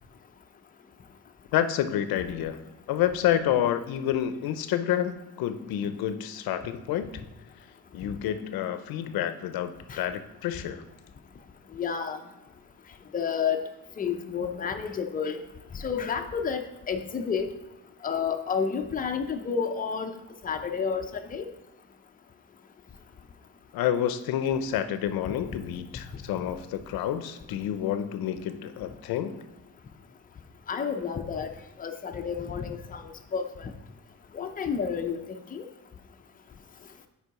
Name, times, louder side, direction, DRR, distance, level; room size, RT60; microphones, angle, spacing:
voice 1, 1.5-2.6 2.9-7.1 7.9-10.8 23.7-29.4, left 10 dB, 80° left, 11 dB, 0.6 m, -29 dB
voice 2, 11.7-12.2 13.1-13.6 14.0-15.4 15.7-17.5 18.0-20.1 20.4-21.5 30.7-31.5 31.8-33.0 33.3-33.7 34.3-35.7, left 6 dB, 25° left, 6 dB, 0.5 m, -30 dB
6.6 x 4.7 x 4.7 m, 1.0 s
cardioid pair, 140°, 36 cm